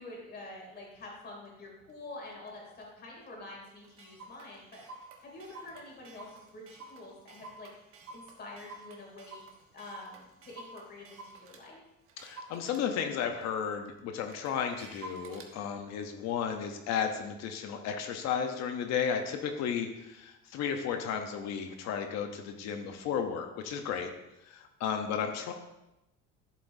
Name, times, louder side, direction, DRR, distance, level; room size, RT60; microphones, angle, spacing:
voice 1, 0.0-4.8 5.2-7.7 8.1-9.4 9.7-11.8, left 2 dB, 35° left, -1 dB, 2.9 m, -47 dB
Clock, 1.0-1.1 1.7-1.9 2.5-2.6 2.8-2.9 3.3-3.4 3.6-11.6 12.1-15.5, right 3 dB, 45° right, 1.3 m, -50 dB
voice 2, 12.2-24.1 24.4-25.5, left 7 dB, 60° left, 5 dB, 0.9 m, -33 dB
11.5 x 7.4 x 2.7 m, 0.94 s
cardioid pair, 145°, 30 cm